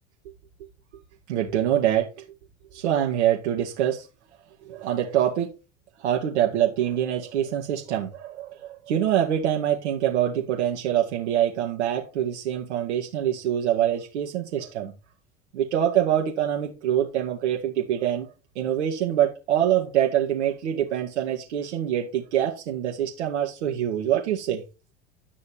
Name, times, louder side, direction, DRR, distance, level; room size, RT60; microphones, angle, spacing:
voice 1, 1.3-2.1 2.7-4.0 4.6-5.5 6.0-14.9 15.5-18.3 18.6-24.6, right 11 dB, 75° right, 2.3 m, -25 dB
11.0 x 6.4 x 4.6 m
hypercardioid pair, 90°, 34 cm